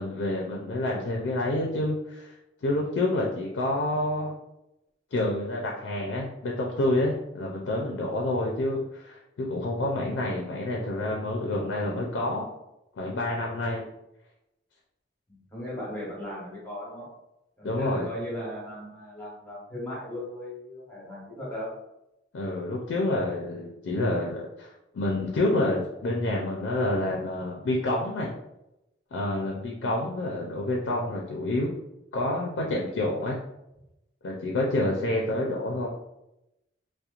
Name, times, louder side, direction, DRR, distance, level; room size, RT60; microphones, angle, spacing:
voice 1, 0.0-2.3 2.6-4.3 5.1-12.5 13.0-13.8 17.6-18.1 22.3-24.7 24.9-28.3 29.1-31.7 32.1-33.4 34.2-35.9, left 1 dB, 75° left, -1 dB, 0.4 m, -28 dB
voice 2, 15.3-17.1 17.6-21.7 34.9-35.0, equal, 10° left, -6 dB, 1.1 m, -37 dB
2.8 x 2.1 x 2.4 m, 0.88 s
head